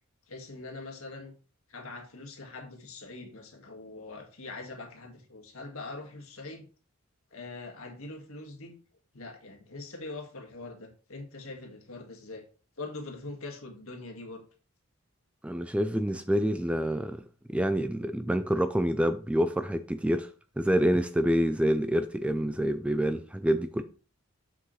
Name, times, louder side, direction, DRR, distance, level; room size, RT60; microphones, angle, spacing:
voice 1, 0.3-1.3 1.7-6.7 7.3-8.8 9.1-12.4 12.8-14.4, left 3 dB, 70° left, 1.8 m, -43 dB
voice 2, 15.4-17.2 17.5-20.3 20.6-23.8, equal, 5° right, 0.3 m, -27 dB
7.3 x 6.4 x 3.2 m
head